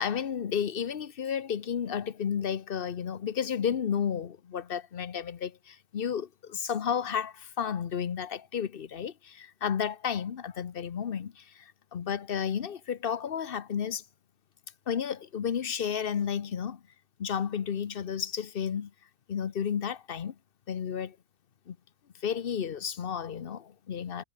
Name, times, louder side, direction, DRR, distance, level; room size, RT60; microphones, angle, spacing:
voice 1, 0.0-14.0 14.9-16.8 17.2-18.9 19.3-20.3 20.7-21.2 21.7-21.8 22.2-24.2, left 8 dB, 55° left, 1.1 m, -32 dB
omnidirectional pair, 1.2 m